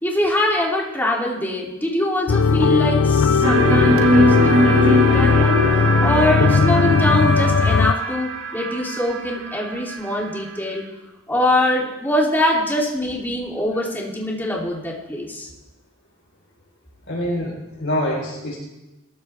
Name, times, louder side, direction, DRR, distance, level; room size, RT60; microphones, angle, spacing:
voice 1, 0.0-5.6 6.0-10.8 11.3-15.5, left 1 dB, 10° left, -3 dB, 3.0 m, -23 dB
sound 1, 2.3-7.9, left 5 dB, 85° left, 0.4 m, -18 dB
sound 2, 3.4-10.4, equal, 75° right, 2.2 m, -20 dB
voice 2, 17.1-18.6, equal, 60° left, -5 dB, 4.4 m, -25 dB
27.0 x 14.0 x 3.5 m, 1.0 s
head